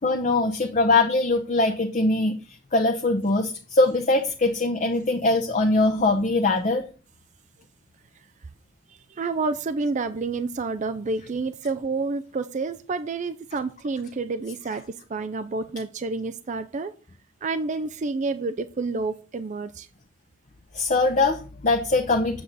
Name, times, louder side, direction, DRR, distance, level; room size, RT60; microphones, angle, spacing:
voice 1, 0.0-2.4 2.7-6.8 20.7-22.4, left 2 dB, 35° left, 4 dB, 0.7 m, -22 dB
voice 2, 9.1-16.9 17.4-19.9, right 3 dB, 35° right, 11 dB, 0.4 m, -29 dB
7.8 x 7.5 x 4.0 m, 0.36 s
head